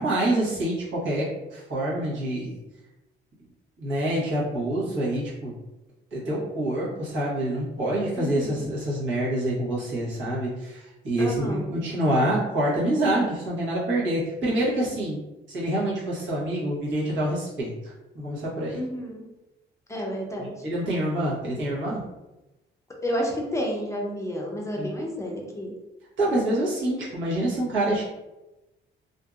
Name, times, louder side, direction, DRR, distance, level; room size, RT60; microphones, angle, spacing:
voice 1, 0.0-2.6 3.8-5.5 6.1-15.2 15.5-18.8 20.4-22.0 24.8-24.9 26.2-28.0, right 1 dB, 70° right, -6 dB, 1.2 m, -26 dB
voice 2, 8.2-8.7 11.2-11.7 18.7-19.3 19.9-20.5 23.0-25.7, equal, 15° left, -1 dB, 0.6 m, -30 dB
2.6 x 2.6 x 2.4 m, 1.0 s
cardioid pair, 90°, 20 cm